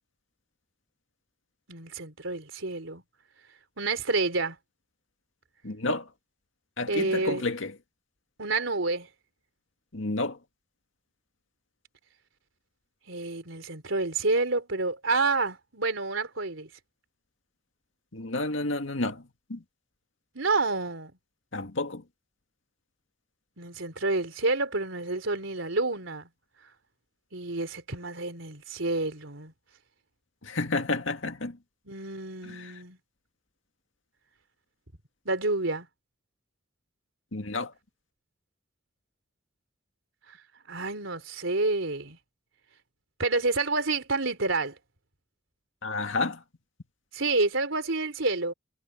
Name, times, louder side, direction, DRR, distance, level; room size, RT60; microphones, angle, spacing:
voice 1, 1.7-3.0 3.8-4.6 6.9-7.5 8.4-9.1 13.1-16.7 20.3-21.1 23.6-26.3 27.3-29.5 31.9-33.0 35.3-35.9 40.3-40.4 40.7-42.2 43.2-44.8 47.1-48.5, right 3 dB, 85° right, 3.9 m, -29 dB
voice 2, 5.6-6.1 6.8-7.7 9.9-10.4 18.1-19.6 21.5-22.0 30.4-31.6 32.4-32.7 37.3-37.7 45.8-46.4, left 2 dB, 85° left, 2.0 m, -30 dB
head